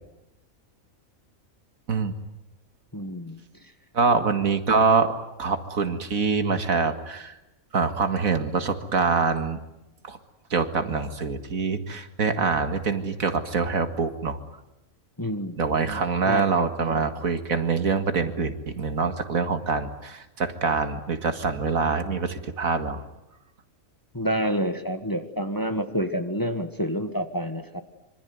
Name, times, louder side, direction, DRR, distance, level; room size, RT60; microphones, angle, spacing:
voice 1, 2.9-3.4 15.2-15.6 16.3-16.7 24.1-27.8, equal, 15° left, 8 dB, 1.5 m, -28 dB
voice 2, 3.9-5.1 5.4-7.3 7.7-9.6 10.1-10.2 10.5-14.4 15.6-23.0, right 4 dB, 80° right, 8 dB, 2.3 m, -25 dB
25.5 x 24.5 x 9.5 m, 0.92 s
omnidirectional pair, 1.4 m